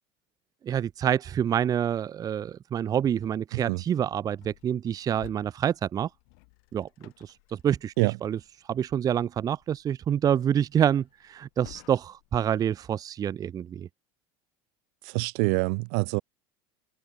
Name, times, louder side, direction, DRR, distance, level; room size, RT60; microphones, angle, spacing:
voice 1, 0.6-6.1 6.7-7.9 8.2-8.4 8.7-13.9, right 9 dB, 30° right, 0.6 m, -27 dB
voice 2, 3.5-3.8 8.0-8.2 15.0-16.2, right 35 dB, 70° right, 0.9 m, -26 dB
sound 1, 4.3-12.4, left 40 dB or more, 70° left, 7.8 m, -56 dB
open air
supercardioid pair, 95°, 12 cm